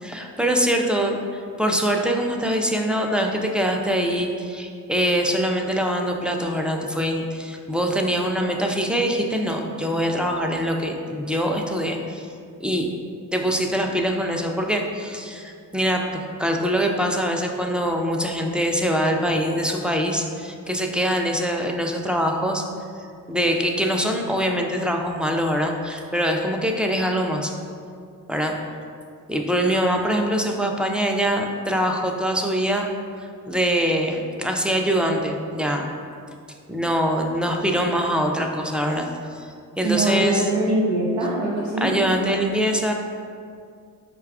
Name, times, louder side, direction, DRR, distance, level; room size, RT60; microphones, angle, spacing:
voice 1, 0.0-12.3 12.6-12.9 13.3-22.6 23.3-27.5 28.3-28.6 29.3-32.9 33.2-35.9 36.7-39.5 39.8-40.5 41.8-42.9, equal, ahead, 2 dB, 0.4 m, -23 dB
voice 2, 39.8-42.0, right 2 dB, 75° right, -6 dB, 0.7 m, -23 dB
4.9 x 2.3 x 4.7 m, 2.3 s
cardioid pair, 60°, 40 cm